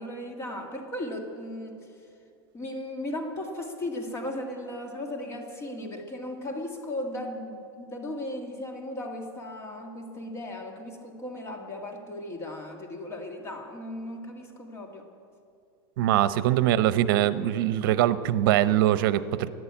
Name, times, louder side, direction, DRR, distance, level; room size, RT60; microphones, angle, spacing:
voice 1, 0.0-2.0 2.5-15.1 16.0-16.1, left 1 dB, 20° left, 2 dB, 1.9 m, -36 dB
voice 2, 16.0-19.5, right 12 dB, 65° right, 14 dB, 0.8 m, -23 dB
14.5 x 11.0 x 8.7 m, 2.4 s
supercardioid pair, 145°, 12 cm